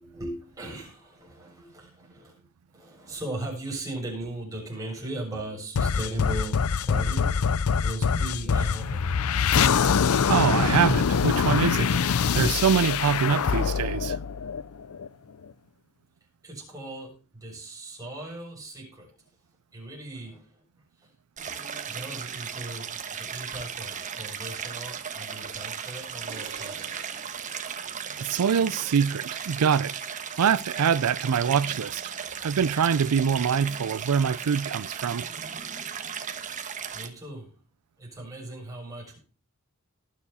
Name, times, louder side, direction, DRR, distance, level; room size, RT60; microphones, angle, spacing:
voice 1, 0.0-2.4 2.7-7.4 7.8-9.2 16.4-19.1 19.7-20.6 21.0-21.1 21.9-26.9 36.9-37.5 38.0-39.2, right 1 dB, 15° right, 7.0 m, -38 dB
sound 1, 5.7-15.1, left 6 dB, 75° left, 0.5 m, -24 dB
voice 2, 10.3-14.2 28.2-32.1 32.4-35.3, right 7 dB, 90° right, 0.4 m, -25 dB
Stream, 21.4-37.1, right 7 dB, 35° right, 1.2 m, -36 dB
sound 2, 26.3-28.6, right 6 dB, 55° right, 1.8 m, -47 dB
18.5 x 7.0 x 4.2 m
head